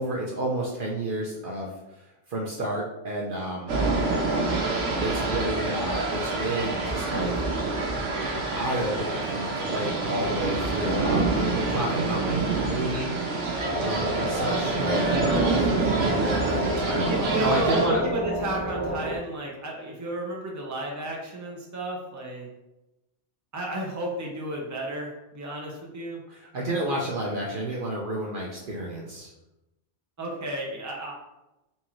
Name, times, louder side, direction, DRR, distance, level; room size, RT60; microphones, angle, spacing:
voice 1, 0.0-2.0 2.3-3.8 5.0-7.3 8.6-13.1 13.7-17.0 17.4-18.0 26.3-29.3, right 1 dB, 50° right, -3 dB, 0.8 m, -31 dB
sound 1, 3.7-17.9, right 3 dB, 85° right, 1.2 m, -27 dB
sound 2, 13.6-19.2, equal, 25° left, 1.6 m, -30 dB
voice 2, 16.8-22.5 23.5-26.2 30.2-31.1, right 1 dB, 15° right, -2 dB, 0.7 m, -32 dB
4.2 x 3.6 x 3.0 m, 0.95 s
omnidirectional pair, 1.2 m